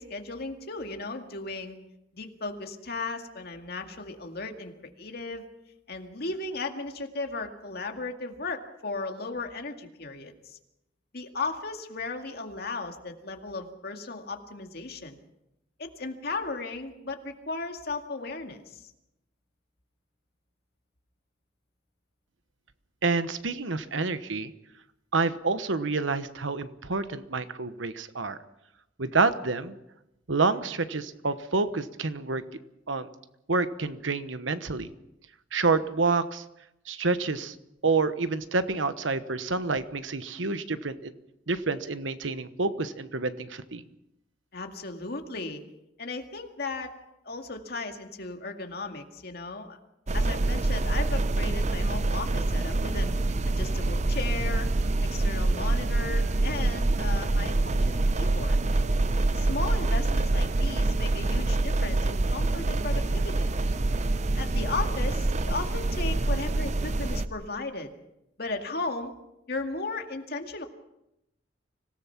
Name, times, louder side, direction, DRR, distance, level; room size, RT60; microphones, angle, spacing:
voice 1, 0.0-1.8 2.1-4.7 5.0-5.4 5.9-10.6 11.1-15.2 15.8-18.8 44.5-45.6 46.0-46.9 47.2-49.8 50.1-53.2 53.5-54.7 55.0-58.6 59.3-63.5 64.3-67.9 68.4-69.1 69.5-70.7, left 3 dB, 55° left, 4 dB, 2.1 m, -36 dB
voice 2, 23.0-24.5 25.1-28.4 29.0-29.8 30.3-32.4 32.9-33.1 33.5-34.9 35.5-36.4 36.9-37.5 37.8-41.1 41.5-43.8, right 3 dB, 90° right, 12 dB, 1.2 m, -28 dB
sound 1, 50.1-67.3, right 2 dB, 40° right, 0.7 m, -26 dB
25.5 x 17.5 x 5.9 m, 0.87 s
head